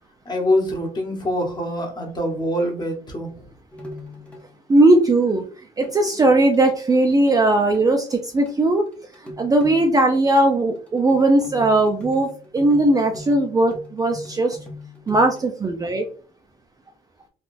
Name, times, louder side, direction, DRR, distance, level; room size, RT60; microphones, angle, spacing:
voice 1, 0.2-3.3, left 1 dB, 25° left, 1 dB, 1.1 m, -24 dB
sound 1, 3.7-4.9 5.3-5.4 5.8-5.9 6.2-6.6 6.9-7.0 7.3-7.4 7.6-8.2 8.5-8.6 8.9-10.0 10.3-10.4 10.8-15.5, left 2 dB, 10° left, 0.8 m, -40 dB
voice 2, 4.7-5.4 5.8-8.8 9.4-14.6 15.1-16.0, right 2 dB, 20° right, 4 dB, 0.4 m, -18 dB
3.7 x 2.3 x 2.5 m, 0.39 s
cardioid pair, 110°, 17 cm